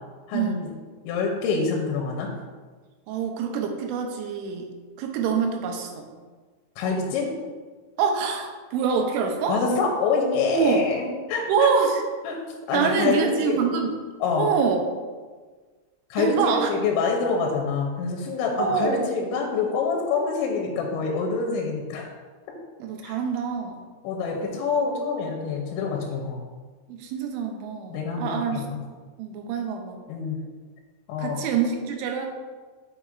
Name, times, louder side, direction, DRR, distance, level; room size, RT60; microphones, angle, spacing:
voice 1, 0.3-0.7 1.0-2.3 6.8-7.3 9.5-11.7 12.2-12.4 12.7-13.6 14.2-14.5 16.1-22.1 23.0-23.2 24.0-26.4 27.9-28.8 29.4-29.5 30.1-30.4 31.1-31.5, left 5 dB, 80° left, 1 dB, 2.8 m, -26 dB
voice 2, 3.1-4.7 5.0-6.1 8.0-9.6 10.5-10.9 11.5-12.0 12.7-13.9 14.4-14.8 16.2-16.7 18.6-19.1 22.8-23.8 26.9-28.7 29.2-30.0 31.2-32.3, right 6 dB, 80° right, 3 dB, 3.0 m, -25 dB
7.3 x 5.5 x 2.4 m, 1.4 s
omnidirectional pair, 5.6 m